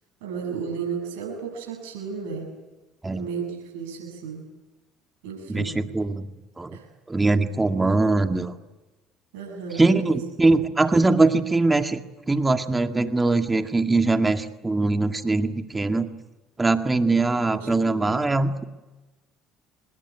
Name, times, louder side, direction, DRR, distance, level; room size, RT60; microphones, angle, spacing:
voice 1, 0.2-2.5 3.1-4.4 5.2-5.8 6.7-6.9 9.3-10.2 17.4-18.2, right 6 dB, 80° right, 1 dB, 7.6 m, -34 dB
voice 2, 5.5-6.2 6.6-6.8 7.1-8.5 9.8-12.0 12.3-16.1 16.6-18.6, right 3 dB, 20° right, 6 dB, 2.0 m, -22 dB
25.0 x 20.5 x 9.9 m, 1.1 s
hypercardioid pair, 70°, 0 cm